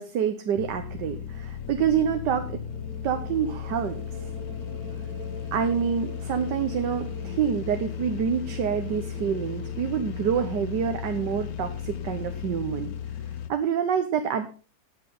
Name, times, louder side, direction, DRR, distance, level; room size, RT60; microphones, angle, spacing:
voice 1, 0.0-2.5 3.0-4.0 4.2-4.3 5.5-12.9 13.5-14.5, right 8 dB, 90° right, 7 dB, 1.6 m, -27 dB
sound 1, 0.6-13.5, left 9 dB, 65° left, 1.1 m, -35 dB
sound 2, 1.2-13.1, right 5 dB, 65° right, 1.7 m, -46 dB
18.5 x 6.5 x 3.9 m, 0.35 s
omnidirectional pair, 1.8 m